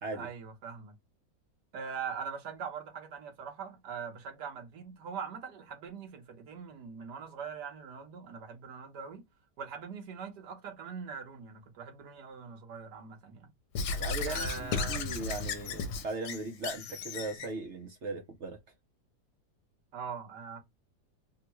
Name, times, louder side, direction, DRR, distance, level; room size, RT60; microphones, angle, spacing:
voice 1, 0.1-1.0 1.7-9.2 9.6-13.5 14.3-15.0 19.9-20.6, right 6 dB, 75° right, 1.5 m, -42 dB
Squeak / Writing, 13.7-17.5, left 4 dB, 75° left, 1.2 m, -35 dB
voice 2, 13.9-18.6, right 3 dB, 55° right, 0.8 m, -38 dB
3.6 x 2.2 x 2.9 m
omnidirectional pair, 1.8 m